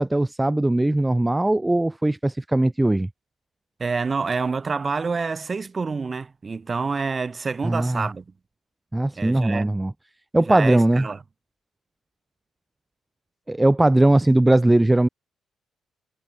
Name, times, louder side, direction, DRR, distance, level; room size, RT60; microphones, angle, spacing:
voice 1, 0.0-3.1 7.6-8.1 8.9-9.9 10.3-11.1 13.5-15.1, right 1 dB, 10° right, 0.9 m, -19 dB
voice 2, 3.8-8.2 9.2-9.7 10.5-11.2, right 4 dB, 30° right, 4.8 m, -27 dB
cardioid pair, 90°, 0 cm